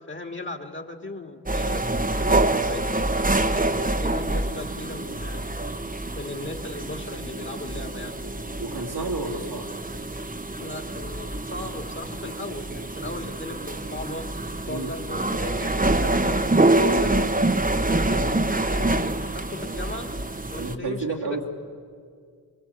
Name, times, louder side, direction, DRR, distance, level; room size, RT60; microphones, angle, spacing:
voice 1, 0.1-1.9 2.2-5.4 6.1-8.1 10.6-14.2 14.7-16.4 16.7-17.2 17.9-20.1 20.5-21.5, left 2 dB, 30° left, 5 dB, 2.7 m, -37 dB
sound 1, 1.5-20.8, right 2 dB, 20° right, 1.4 m, -26 dB
voice 2, 8.6-9.7 14.6-14.9 20.6-21.5, right 3 dB, 80° right, -1 dB, 3.0 m, -31 dB
23.5 x 22.5 x 8.5 m, 2.1 s
cardioid pair, 45°, 38 cm